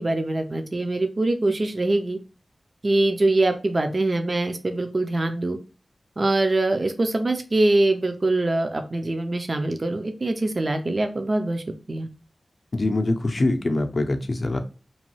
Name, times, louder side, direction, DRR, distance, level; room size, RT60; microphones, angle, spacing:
voice 1, 0.0-2.2 2.8-5.6 6.2-12.1, right 2 dB, 45° right, 0.4 m, -23 dB
voice 2, 12.7-14.6, left 2 dB, 50° left, 0.5 m, -24 dB
2.9 x 2.2 x 3.0 m
wide cardioid pair, 90°, 0 cm